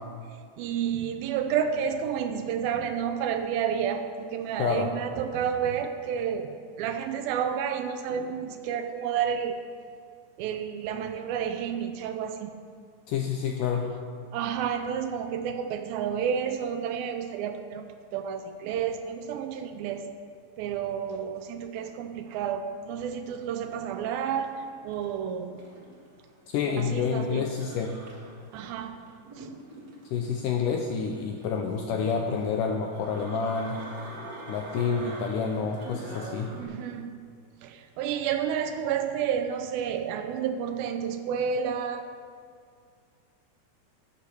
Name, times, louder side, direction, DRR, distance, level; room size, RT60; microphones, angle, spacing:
voice 1, 0.6-6.5 6.8-9.6 10.4-12.5 14.3-17.8 18.1-20.1 20.6-25.6 26.7-27.5 28.5-29.0 29.4-29.5 36.6-37.2 37.6-42.1, right 8 dB, 80° right, 8 dB, 2.3 m, -30 dB
voice 2, 4.6-4.9 13.1-13.9 26.5-27.9 30.1-33.8 34.5-36.5, left 6 dB, 80° left, 2 dB, 1.9 m, -28 dB
sound 1, 23.4-36.6, right 2 dB, 40° right, 1.5 m, -45 dB
10.0 x 8.4 x 6.7 m, 2.1 s
omnidirectional pair, 4.5 m